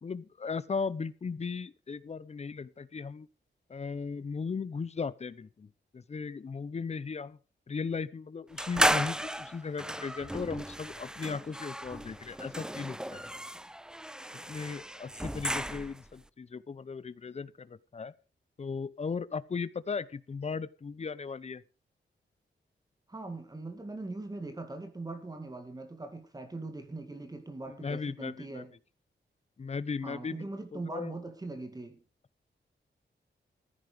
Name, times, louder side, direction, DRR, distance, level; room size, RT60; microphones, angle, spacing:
voice 1, 0.0-3.3 3.7-7.4 7.7-13.2 14.5-18.1 18.6-21.6 27.7-28.6 29.6-31.2, left 5 dB, 35° left, 0.7 m, -37 dB
sound 1, 8.6-16.1, right 1 dB, 5° right, 0.5 m, -34 dB
voice 2, 23.1-28.7 30.0-32.0, right 2 dB, 20° right, 2.1 m, -41 dB
15.0 x 9.8 x 5.0 m
wide cardioid pair, 175°, 20 cm